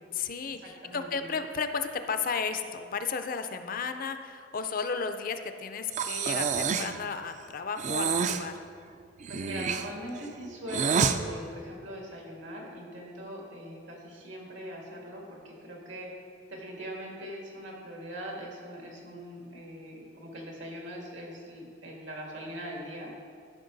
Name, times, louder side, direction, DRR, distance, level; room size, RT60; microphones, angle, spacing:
voice 1, 0.1-8.6, left 5 dB, 50° left, 8 dB, 0.5 m, -33 dB
voice 2, 0.8-1.2 9.3-16.1 16.5-23.1, equal, 85° right, -1 dB, 2.1 m, -41 dB
Breathing, 5.9-7.0 7.8-8.4 9.2-11.2, right 6 dB, 40° right, 0.4 m, -28 dB
13.5 x 5.8 x 4.0 m, 2.2 s
head